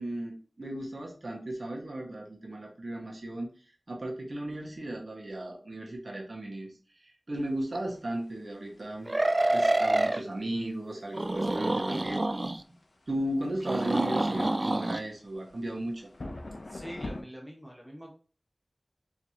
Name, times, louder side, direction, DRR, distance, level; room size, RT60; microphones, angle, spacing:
voice 1, 0.0-3.5 3.9-6.7 7.3-9.1 9.5-12.2 13.1-16.1, right 1 dB, 65° right, 0 dB, 1.4 m, -35 dB
sound 1, 7.4-17.2, left 2 dB, 75° left, 0.7 m, -47 dB
sound 2, 7.7-7.8 9.1-10.2 11.1-12.6 13.6-15.0, right 1 dB, 40° right, 0.3 m, -27 dB
voice 2, 16.7-18.1, equal, ahead, -2 dB, 1.4 m, -44 dB
4.7 x 3.2 x 2.9 m, 0.38 s
wide cardioid pair, 55°, 0 cm